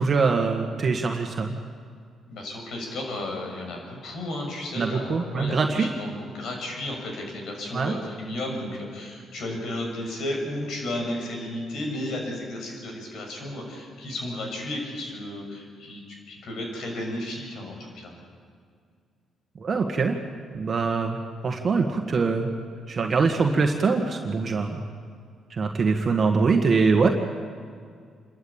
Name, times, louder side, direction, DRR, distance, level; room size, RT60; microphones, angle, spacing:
voice 1, 0.0-1.5 4.8-5.9 7.7-8.0 19.6-20.2 20.5-21.2 21.4-22.5 22.9-24.8 25.5-27.1, right 4 dB, 45° right, 2 dB, 1.7 m, -23 dB
voice 2, 2.3-18.2, left 1 dB, 70° left, 2 dB, 6.6 m, -33 dB
27.5 x 13.0 x 8.8 m, 2.1 s
cardioid pair, 90°, 0 cm